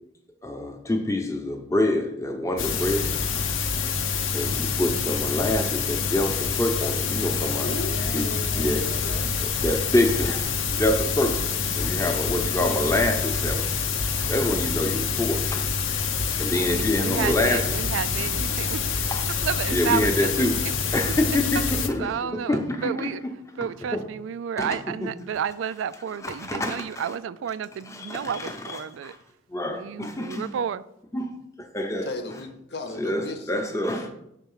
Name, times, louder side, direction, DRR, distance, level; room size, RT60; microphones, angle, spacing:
voice 1, 0.4-3.5 4.3-7.7 8.1-8.3 8.6-8.8 9.4-11.5 11.8-13.7 14.3-15.7 16.3-17.8 19.1-19.2 19.7-20.6 20.9-23.3 23.9-24.1 24.6-24.8 26.2-27.1 27.9-29.2 29.5-30.6 31.1-32.4 33.0-34.1, left 1 dB, 15° left, 0.8 m, -26 dB
sound 1, 2.6-21.9, left 5 dB, 90° left, 0.8 m, -26 dB
voice 2, 7.6-9.4 32.0-33.8, left 2 dB, 55° left, 0.8 m, -35 dB
voice 3, 16.5-18.9 19.4-20.5 21.7-23.2 23.6-29.2 29.6-30.8, right 8 dB, 80° right, 0.3 m, -31 dB
6.9 x 4.2 x 5.6 m
head